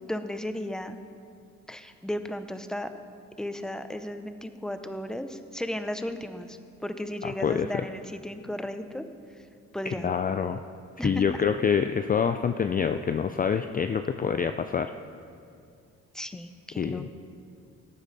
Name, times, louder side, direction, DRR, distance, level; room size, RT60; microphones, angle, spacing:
voice 1, 0.1-1.0 1.7-2.9 3.4-9.5 9.7-10.1 11.0-11.2 16.1-17.1, left 1 dB, ahead, 9 dB, 0.7 m, -35 dB
voice 2, 10.0-10.6 11.0-14.9 16.8-17.1, left 7 dB, 30° left, 8 dB, 0.4 m, -26 dB
19.5 x 9.0 x 4.1 m, 2.4 s
cardioid pair, 90°, 30 cm